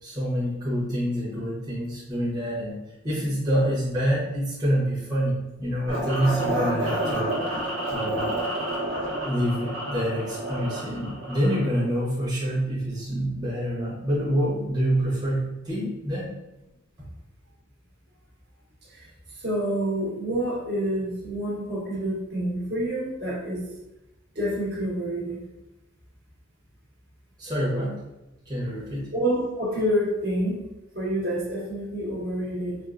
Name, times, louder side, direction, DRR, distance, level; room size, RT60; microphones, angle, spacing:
voice 1, 0.0-2.8 3.0-7.5 7.9-8.3 9.2-16.3 27.4-28.0 28.5-29.1, equal, 20° right, -9 dB, 0.9 m, -27 dB
sound 1, 5.9-11.8, right 1 dB, 90° right, 0.9 m, -29 dB
voice 2, 18.8-23.6 24.3-25.4 29.1-30.6 30.9-32.8, equal, 55° right, -6 dB, 1.3 m, -28 dB
4.3 x 2.4 x 2.4 m, 0.96 s
head